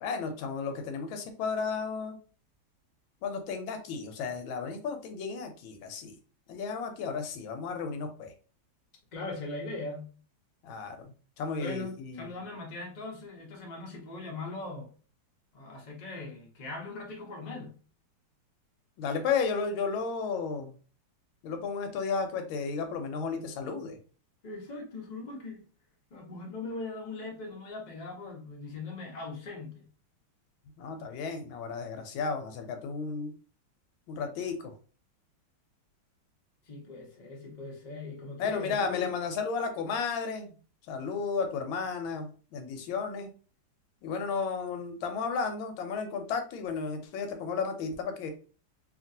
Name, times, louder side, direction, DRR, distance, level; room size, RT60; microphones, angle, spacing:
voice 1, 0.0-2.2 3.2-6.2 6.5-8.3 10.6-11.1 11.4-12.3 19.0-20.7 21.4-24.0 30.8-33.3 34.1-34.7 38.4-40.5 40.9-43.3 44.0-48.3, left 5 dB, 80° left, 1.4 m, -33 dB
voice 2, 9.1-10.1 11.6-14.9 15.5-17.7 24.4-25.6 26.1-29.8 36.7-39.1, left 3 dB, 60° left, 0.4 m, -40 dB
2.9 x 2.7 x 2.6 m
omnidirectional pair, 2.2 m